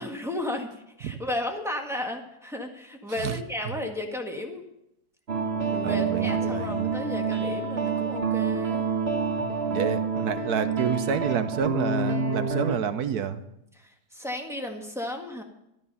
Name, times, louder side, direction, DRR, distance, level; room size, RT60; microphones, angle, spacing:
voice 1, 0.0-4.6 5.7-8.9 13.7-15.4, left 1 dB, ahead, 2 dB, 1.6 m, -34 dB
sound 1, 5.3-12.8, right 4 dB, 35° right, 1.5 m, -27 dB
voice 2, 5.8-6.9 9.4-13.4, right 7 dB, 60° right, 11 dB, 1.3 m, -29 dB
13.0 x 13.0 x 5.6 m, 0.83 s
omnidirectional pair, 2.0 m